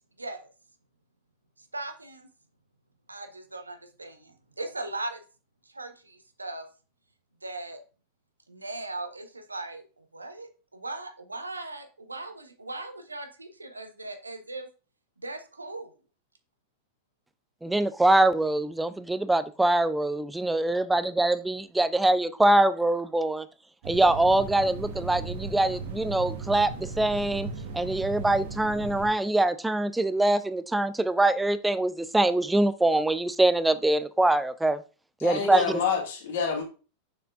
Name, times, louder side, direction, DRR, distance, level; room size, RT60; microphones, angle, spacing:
voice 1, 0.2-0.5 1.6-2.3 3.1-5.2 5.7-6.7 7.4-7.8 8.5-14.7 15.2-15.9, right 2 dB, 80° right, 0.9 m, -39 dB
voice 2, 17.6-23.4 23.9-27.5 27.7-34.8 35.2-35.6, right 2 dB, 5° right, 0.4 m, -24 dB
Roomtone Hallway upstairs Spinnerij Front, 23.8-29.1, right 4 dB, 55° right, 1.3 m, -37 dB
voice 3, 35.2-36.6, left 6 dB, 55° left, 2.0 m, -27 dB
6.6 x 6.5 x 2.4 m
figure-of-eight pair, 90°, 0 cm